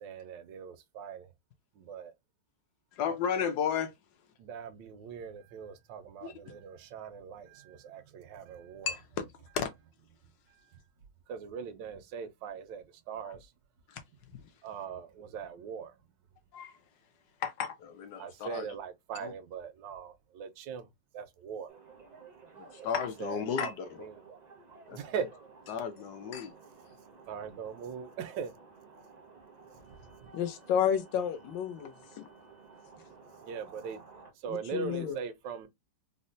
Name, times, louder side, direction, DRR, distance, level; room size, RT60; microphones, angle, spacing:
voice 1, 0.0-1.3 1.7-2.1 4.4-8.9 10.5-10.6 11.3-13.5 14.6-16.0 18.2-21.7 22.8-23.7 24.0-24.2 24.9-25.3 27.3-28.5 29.8-30.3 33.4-35.7, right 7 dB, 90° right, 1.3 m, -41 dB
voice 2, 2.9-3.9 6.2-6.3 8.8-9.2 9.5-9.7 13.9-14.0 14.3-14.5 16.5-16.8 17.4-18.7 19.2-19.3 22.6-24.1 24.9-25.3 25.7-26.5, left 7 dB, 70° left, 1.2 m, -34 dB
sound 1, 21.7-34.3, right 4 dB, 45° right, 0.5 m, -54 dB
voice 3, 30.3-32.3 34.5-35.2, left 8 dB, 90° left, 1.4 m, -31 dB
4.2 x 2.1 x 2.6 m
omnidirectional pair, 1.9 m